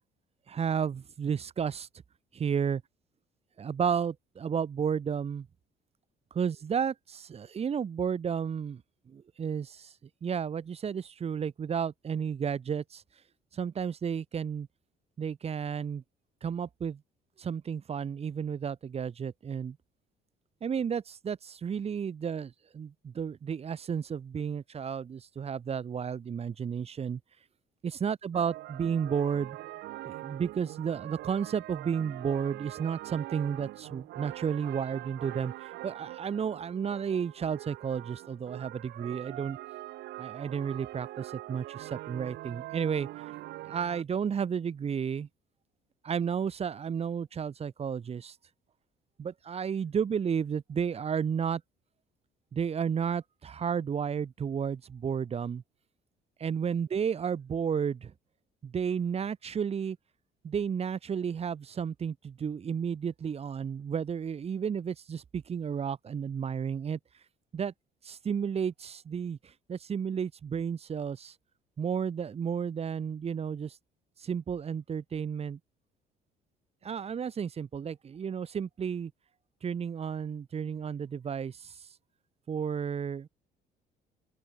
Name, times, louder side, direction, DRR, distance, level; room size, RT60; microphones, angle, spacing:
voice 1, 0.5-1.9 2.3-2.8 3.6-5.5 6.3-8.8 9.1-9.9 10.2-13.0 13.5-14.7 15.2-16.0 16.4-17.0 17.4-19.8 20.6-27.2 27.8-29.6 30.0-39.6 40.2-43.1 43.6-45.3 46.0-48.3 49.2-51.6 52.5-55.6 56.4-58.1 58.6-60.0 60.4-67.0 67.5-67.7 68.0-69.4 69.7-71.3 71.8-73.8 74.2-75.6 76.8-79.1 79.6-81.7 82.5-83.3, right 7 dB, 35° right, 1.7 m, -32 dB
sound 1, 28.3-44.0, right 16 dB, 80° right, 3.1 m, -43 dB
open air
cardioid pair, 110°, 17 cm